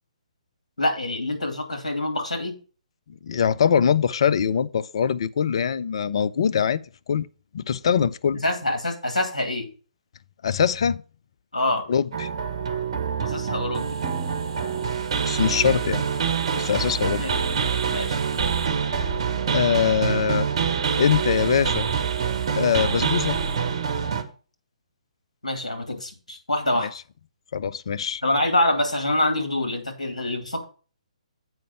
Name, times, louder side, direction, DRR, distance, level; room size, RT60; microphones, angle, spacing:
voice 1, 0.8-2.6 8.3-9.7 11.5-11.8 13.2-13.9 17.0-17.3 17.9-18.2 25.4-26.9 28.2-30.6, left 1 dB, 70° left, 2.3 m, -25 dB
voice 2, 3.2-6.8 7.1-7.3 7.5-8.4 10.4-11.0 11.9-12.3 15.2-16.0 16.6-17.3 19.5-20.5 21.0-21.9 22.6-23.4 26.8-26.9 27.5-28.2, left 7 dB, 50° left, 0.4 m, -22 dB
sound 1, 12.1-24.2, right 6 dB, 45° right, 1.3 m, -26 dB
7.8 x 5.1 x 5.6 m
figure-of-eight pair, 130°, 4 cm